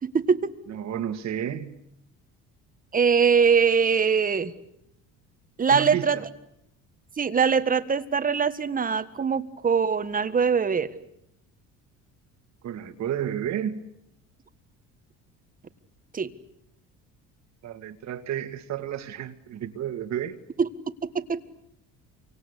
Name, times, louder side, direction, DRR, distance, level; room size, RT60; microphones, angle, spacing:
voice 1, 0.0-0.6 2.9-4.5 5.6-6.2 7.2-10.9 16.1-16.3 20.6-20.7 21.0-21.4, right 6 dB, 25° right, 1.6 m, -22 dB
voice 2, 0.7-1.8 5.7-6.2 12.6-13.8 17.6-20.4, right 10 dB, 55° right, 2.3 m, -31 dB
28.0 x 25.0 x 8.3 m
cardioid pair, 120°, 32 cm